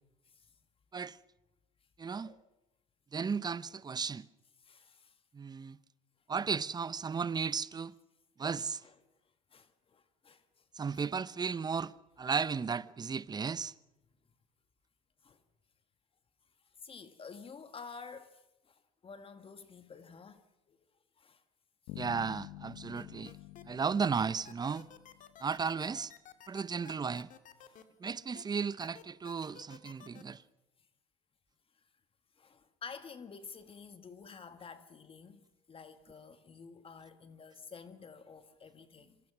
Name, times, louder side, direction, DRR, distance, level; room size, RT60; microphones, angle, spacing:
voice 1, 2.0-2.3 3.1-4.2 5.3-5.8 6.3-7.9 8.4-8.8 10.7-13.7 22.0-23.3 23.7-24.9 25.4-26.1 26.5-27.3 28.0-30.4, right 5 dB, 25° right, 0.8 m, -34 dB
voice 2, 4.6-5.2 8.8-9.0 9.5-10.6 10.9-11.1 11.7-11.8 15.2-15.4 16.8-20.8 21.2-21.4 23.3-23.5 24.6-24.8 27.6-27.9 32.4-39.2, left 5 dB, 35° left, 1.8 m, -51 dB
sound 1, 21.9-25.6, left 17 dB, 70° left, 1.1 m, -49 dB
sound 2, 22.9-23.6 24.0-28.4 28.8-30.2, left 9 dB, 50° left, 2.3 m, -53 dB
26.5 x 24.0 x 6.1 m
hypercardioid pair, 75°, 17 cm